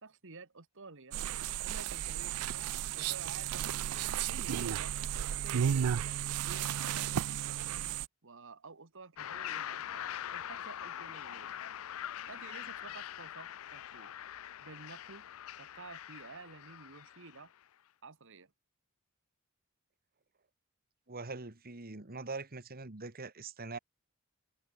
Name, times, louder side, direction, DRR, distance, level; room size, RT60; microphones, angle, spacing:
voice 1, 0.0-1.2 1.6-2.7 2.9-5.0 5.3-7.3 8.2-11.6 12.3-14.1 14.6-15.2 15.6-17.5 18.0-18.5, right 4 dB, 60° right, 1.9 m, -51 dB
sound 1, 1.1-8.1, right 9 dB, 90° right, 0.4 m, -34 dB
sound 2, 9.2-17.5, left 10 dB, 70° left, 0.5 m, -43 dB
voice 2, 21.1-23.8, right 3 dB, 45° right, 1.8 m, -43 dB
head